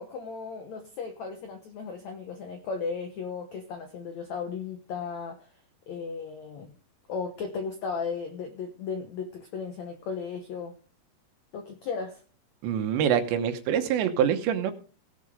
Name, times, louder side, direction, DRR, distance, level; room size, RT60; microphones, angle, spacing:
voice 1, 0.0-5.5 5.9-6.7 7.1-10.8 11.5-12.2, left 5 dB, 80° left, 6 dB, 1.6 m, -35 dB
voice 2, 12.6-14.7, right 9 dB, 85° right, 8 dB, 3.4 m, -25 dB
17.5 x 7.2 x 5.1 m, 0.39 s
omnidirectional pair, 5.0 m